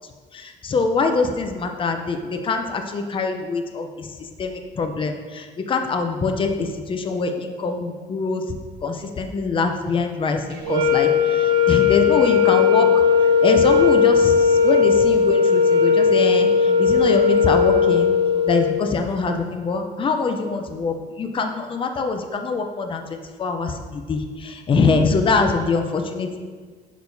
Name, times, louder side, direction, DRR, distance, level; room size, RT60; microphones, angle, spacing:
voice 1, 0.3-4.1 4.4-8.4 8.8-12.9 13.4-18.1 18.5-26.4, left 4 dB, 30° left, 5 dB, 0.6 m, -23 dB
sound 1, 10.6-18.8, left 6 dB, 80° right, 1.3 m, -17 dB
6.7 x 6.1 x 2.7 m, 1.5 s
cardioid pair, 110°, 17 cm